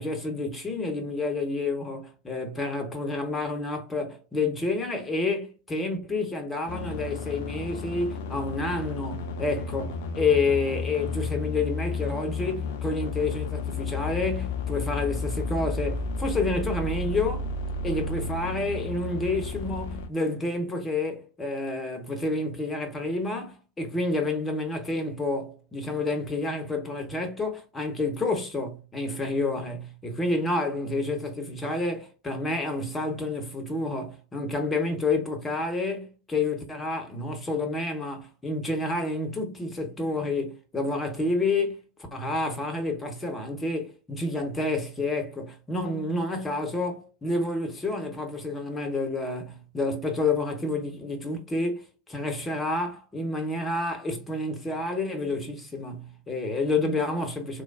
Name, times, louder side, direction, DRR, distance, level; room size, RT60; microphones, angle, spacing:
voice 1, 0.0-17.5 17.8-41.8 42.1-57.6, left 2 dB, 15° left, 0.8 m, -29 dB
sound 1, 6.7-20.1, left 4 dB, 50° left, 0.5 m, -32 dB
3.1 x 2.2 x 2.4 m
figure-of-eight pair, 90°, 0 cm